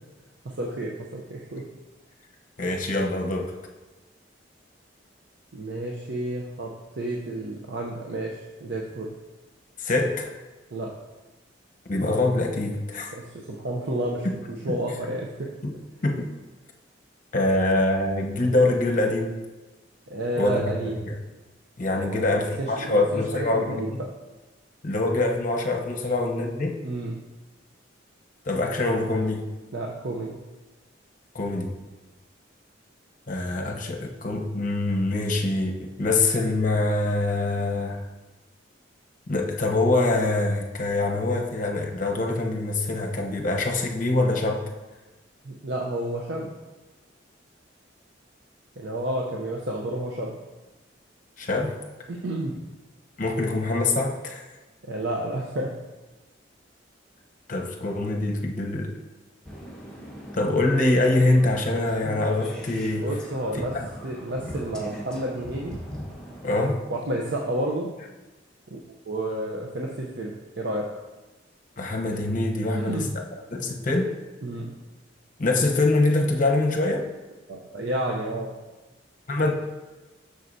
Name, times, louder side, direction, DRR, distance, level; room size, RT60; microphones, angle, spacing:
voice 1, 0.4-1.7 5.5-6.7 7.0-9.1 10.7-10.9 13.1-15.5 20.1-21.0 22.0-23.9 26.8-27.2 29.7-30.4 45.4-46.5 48.8-50.4 52.1-52.6 54.8-55.7 63.0-63.7 64.0-65.8 66.9-67.9 68.7-68.8 69.1-70.9 72.7-73.1 74.4-74.7 77.5-78.5, right 1 dB, 60° right, -2 dB, 0.7 m, -31 dB
voice 2, 2.6-3.5 9.8-10.4 11.9-13.1 14.2-14.3 14.7-14.8 15.6-15.7 16.0-16.3 17.3-19.3 20.3-20.6 21.1-21.2 21.8-24.0 24.8-26.8 28.4-29.5 31.3-31.7 33.3-38.0 39.3-44.6 51.4-51.8 53.2-54.4 57.5-59.0 60.3-63.1 63.7-63.9 64.5-64.6 66.4-66.8 71.8-73.1 73.5-74.2 75.4-77.1 79.3-79.5, left 2 dB, 45° left, 2 dB, 0.8 m, -24 dB
sound 1, 59.4-66.5, equal, 5° left, 1.1 m, -40 dB
7.7 x 6.5 x 2.7 m, 1.1 s
head